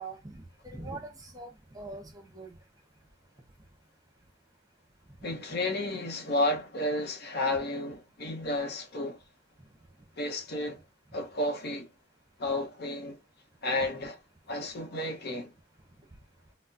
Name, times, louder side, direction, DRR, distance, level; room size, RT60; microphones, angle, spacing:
voice 1, 0.0-2.6 13.8-14.1, right 3 dB, 20° right, 0.8 m, -43 dB
voice 2, 5.2-9.2 10.2-10.8 11.1-11.9 12.4-13.2 13.6-14.1 14.5-15.5, left 1 dB, 55° left, 0.8 m, -32 dB
4.1 x 2.0 x 2.4 m
head